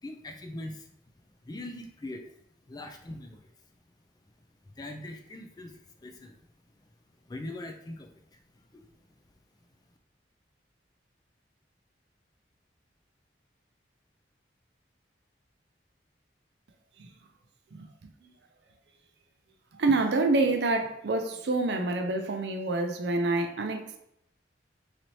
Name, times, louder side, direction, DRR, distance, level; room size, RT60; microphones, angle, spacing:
voice 1, 0.0-0.9 1.4-2.2 2.7-3.5 4.7-6.4 7.3-8.4 8.7-8.9, left 1 dB, 20° left, 0.3 m, -41 dB
voice 2, 19.7-24.0, right 3 dB, 65° right, 0.5 m, -27 dB
4.0 x 2.8 x 3.0 m
head